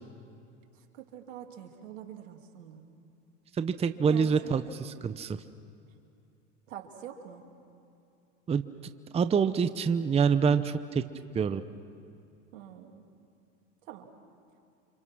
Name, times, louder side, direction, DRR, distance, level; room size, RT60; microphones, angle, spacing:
voice 1, 0.7-2.8 4.1-4.8 6.7-7.4 12.5-13.0 13.8-14.1, right 9 dB, 85° right, 3 dB, 2.9 m, -45 dB
voice 2, 3.6-5.4 8.5-8.6 9.1-11.0 11.3-11.6, right 6 dB, 15° right, 10 dB, 0.7 m, -26 dB
29.5 x 26.5 x 6.2 m, 2.6 s
supercardioid pair, 110°, 37 cm